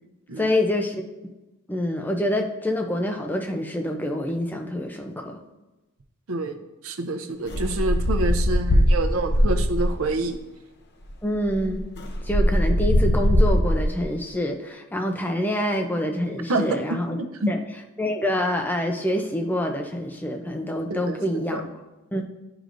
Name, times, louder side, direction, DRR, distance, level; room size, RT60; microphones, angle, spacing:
voice 1, 0.4-1.0 1.7-5.4 11.2-11.9 12.3-17.2 17.5-17.6 18.0-21.7 22.1-22.3, left 1 dB, 10° left, 3 dB, 0.5 m, -26 dB
voice 2, 6.3-6.6 6.8-10.4 16.5-16.8 17.2-17.5 20.9-21.6, right 2 dB, 75° right, 6 dB, 0.6 m, -27 dB
sound 1, 7.5-10.0 11.0-11.1 11.4-14.0, equal, 50° left, 0.7 m, -21 dB
10.5 x 4.9 x 2.6 m, 1.1 s
head